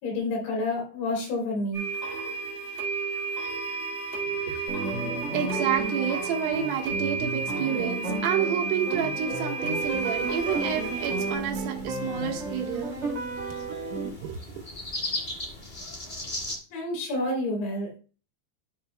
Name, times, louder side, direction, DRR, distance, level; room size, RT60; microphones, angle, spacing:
voice 1, 0.0-1.8 16.7-18.0, left 2 dB, 85° left, 6.0 m, -29 dB
sound 1, 1.7-11.4, right 4 dB, 65° right, 1.2 m, -32 dB
voice 2, 4.2-5.0 5.3-13.0 14.2-14.4, right 9 dB, 85° right, 4.1 m, -30 dB
sound 2, 4.7-14.1, right 2 dB, 20° right, 2.6 m, -33 dB
sound 3, 9.7-16.6, left 2 dB, 65° left, 0.5 m, -39 dB
14.0 x 5.6 x 2.3 m
omnidirectional pair, 5.6 m